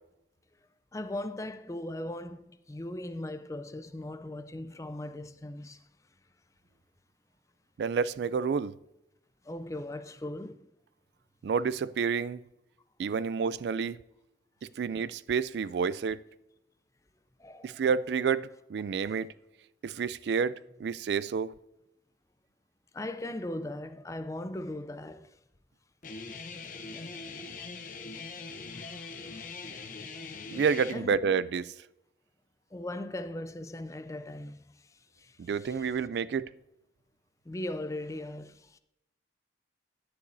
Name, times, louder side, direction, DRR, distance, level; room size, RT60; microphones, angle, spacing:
voice 1, 0.9-5.8 9.4-10.7 17.4-17.8 22.9-25.4 26.9-27.1 28.3-28.4 28.7-29.7 30.9-31.2 32.7-35.8 37.5-38.8, left 1 dB, 15° left, 0.4 m, -39 dB
voice 2, 7.8-8.7 11.4-12.4 13.0-14.0 14.8-16.2 17.6-19.3 19.8-20.5 20.8-21.5 30.5-31.7 35.4-36.5, right 6 dB, 70° right, 0.3 m, -29 dB
Guitar, 26.0-30.9, left 4 dB, 45° left, 0.8 m, -42 dB
11.0 x 9.9 x 2.7 m
head